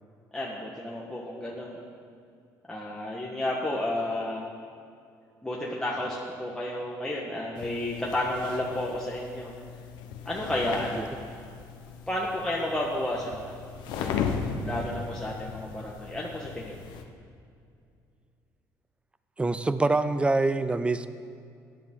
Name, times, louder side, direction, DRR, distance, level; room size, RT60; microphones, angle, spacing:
voice 1, 0.3-1.8 2.7-4.4 5.4-9.5 10.2-11.1 12.1-13.5 13.9-14.3 14.6-16.8, left 1 dB, 10° left, -5 dB, 1.5 m, -32 dB
sound 1, 7.6-17.0, left 6 dB, 85° left, 1.0 m, -37 dB
voice 2, 19.4-21.1, right 3 dB, 15° right, 12 dB, 0.6 m, -25 dB
16.0 x 10.5 x 3.8 m, 2.4 s
cardioid pair, 95°, 8 cm